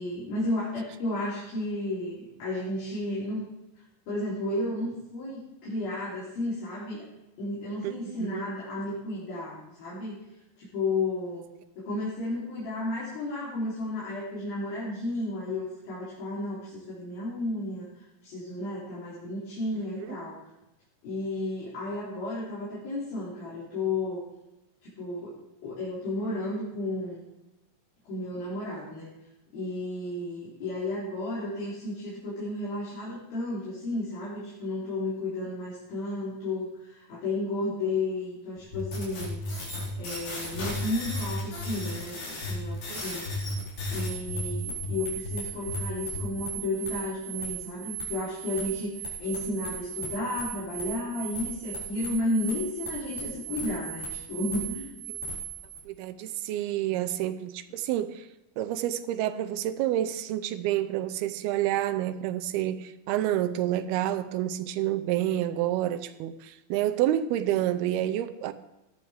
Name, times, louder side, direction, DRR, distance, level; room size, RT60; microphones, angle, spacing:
voice 1, 0.0-3.4 4.1-7.1 7.4-10.2 10.6-11.5 11.8-17.9 18.2-20.4 21.0-24.3 24.8-25.4 25.6-27.2 28.1-29.1 29.5-39.4 40.0-43.3 43.9-55.0, left 2 dB, 65° left, 5.3 m, -33 dB
voice 2, 19.8-20.2 42.9-43.0 55.9-58.3 58.6-68.5, right 12 dB, 85° right, 2.6 m, -29 dB
sound 1, 38.6-40.0 40.5-41.9 42.4-42.8 43.3-45.4 45.7-46.3, left 1 dB, 20° left, 3.3 m, -33 dB
sound 2, 38.9-55.8, right 3 dB, 85° left, 6.6 m, -37 dB
18.0 x 12.0 x 3.5 m
omnidirectional pair, 4.5 m